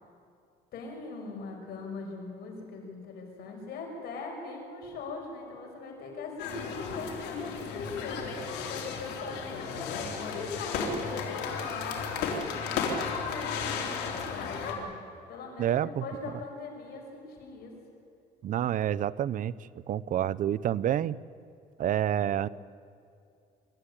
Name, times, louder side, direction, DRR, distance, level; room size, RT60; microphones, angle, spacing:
voice 1, 0.7-12.1 12.6-17.7, left 3 dB, 70° left, 1 dB, 6.2 m, -41 dB
sound 1, 6.4-14.7, left 5 dB, 85° left, 3.5 m, -34 dB
voice 2, 15.6-16.0 18.4-19.5 19.9-21.2 21.8-22.5, right 11 dB, 50° right, 18 dB, 0.6 m, -28 dB
25.0 x 13.0 x 10.0 m, 2.5 s
cardioid pair, 110°, 17 cm